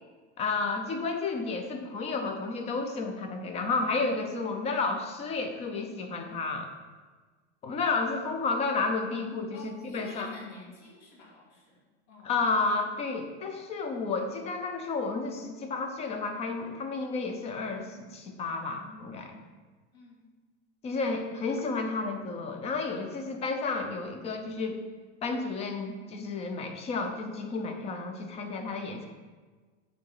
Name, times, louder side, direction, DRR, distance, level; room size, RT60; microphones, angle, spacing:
voice 1, 0.4-6.7 7.6-10.3 12.2-19.4 20.8-24.8 25.2-29.1, left 3 dB, 20° left, 5 dB, 0.6 m, -31 dB
voice 2, 9.5-12.4 19.9-20.4, left 3 dB, 55° left, -4 dB, 2.3 m, -50 dB
6.9 x 3.9 x 5.5 m, 1.4 s
supercardioid pair, 150°, 34 cm